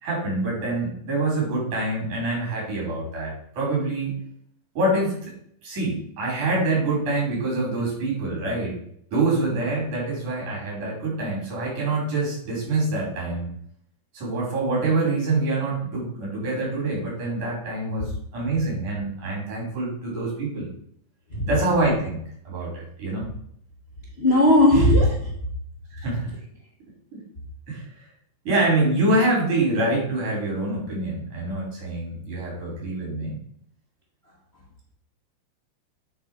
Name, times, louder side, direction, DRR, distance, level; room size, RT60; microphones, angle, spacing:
voice 1, 0.0-4.1 4.7-5.3 5.6-8.8 9.1-13.5 14.1-20.7 21.5-23.3 25.9-26.3 27.1-27.2 27.7-27.8 28.4-33.4, right 2 dB, 70° right, -3 dB, 5.0 m, -25 dB
voice 2, 24.2-25.3, left 1 dB, 30° left, -4 dB, 1.1 m, -17 dB
9.1 x 4.5 x 4.4 m, 0.67 s
omnidirectional pair, 3.6 m